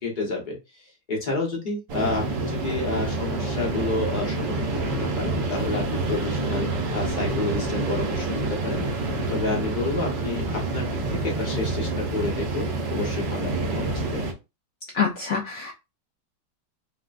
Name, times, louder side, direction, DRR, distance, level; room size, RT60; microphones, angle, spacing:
voice 1, 0.0-0.8 1.1-6.7 6.9-8.8 9.3-14.2, left 3 dB, 35° left, -1 dB, 0.8 m, -30 dB
sound 1, 1.9-14.3, right 2 dB, 75° right, 1.3 m, -27 dB
voice 2, 14.9-15.7, left 6 dB, 70° left, -1 dB, 0.7 m, -26 dB
3.6 x 2.2 x 2.4 m, 0.26 s
omnidirectional pair, 1.9 m